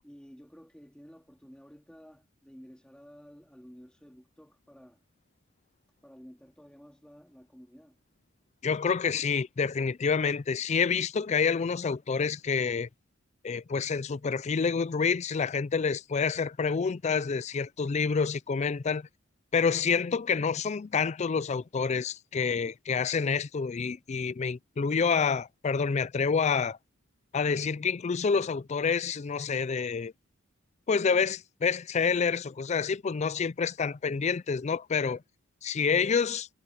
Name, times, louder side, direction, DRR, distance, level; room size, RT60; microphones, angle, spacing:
voice 1, 0.0-5.0 6.0-8.0, equal, 5° left, 3.0 m, -52 dB
voice 2, 8.6-12.9 13.4-19.1 19.5-26.8 27.3-30.1 30.9-35.2 35.6-36.5, left 5 dB, 35° left, 0.4 m, -28 dB
head